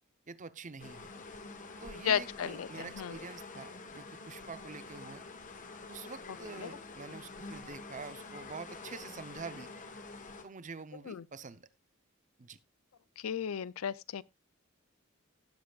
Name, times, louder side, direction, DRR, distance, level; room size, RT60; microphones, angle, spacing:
voice 1, 0.3-1.1 1.8-5.3 5.9-9.7 10.4-11.7 12.4-12.6, right 4 dB, 40° right, 0.7 m, -46 dB
sound 1, 0.8-10.4, left 3 dB, 40° left, 1.3 m, -47 dB
voice 2, 2.0-3.2 11.1-11.2 13.2-14.2, left 8 dB, 85° left, 0.5 m, -34 dB
18.0 x 7.7 x 2.4 m
head